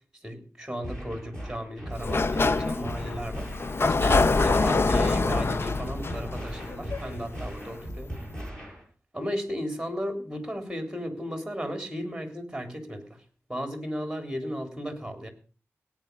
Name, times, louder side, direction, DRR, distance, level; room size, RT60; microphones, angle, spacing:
voice 1, 0.2-3.5 3.9-8.2 9.1-13.2 13.5-15.3, equal, 10° right, 5 dB, 3.4 m, -35 dB
sound 1, 0.8-8.8, right 1 dB, 10° left, 6.3 m, -38 dB
Sliding door, 1.9-7.6, left 3 dB, 50° left, 0.6 m, -25 dB
17.5 x 9.3 x 5.3 m, 0.38 s
wide cardioid pair, 105°, 5 cm